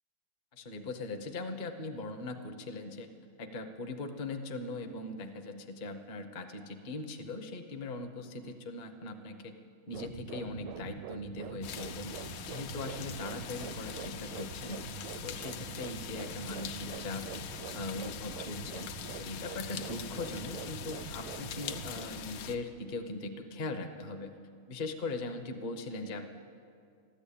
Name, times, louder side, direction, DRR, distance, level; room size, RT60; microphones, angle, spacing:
voice 1, 0.5-3.1 3.4-9.5 9.9-12.1 12.4-14.9 15.2-17.3 17.7-18.9 19.2-24.3 24.7-26.3, left 2 dB, 40° left, 5 dB, 0.6 m, -40 dB
Pumping Heart, 9.9-22.1, right 10 dB, 85° right, 1.4 m, -45 dB
sound 1, 11.6-22.6, left 7 dB, 70° left, 1.4 m, -42 dB
14.0 x 11.5 x 8.6 m, 2.3 s
omnidirectional pair, 2.2 m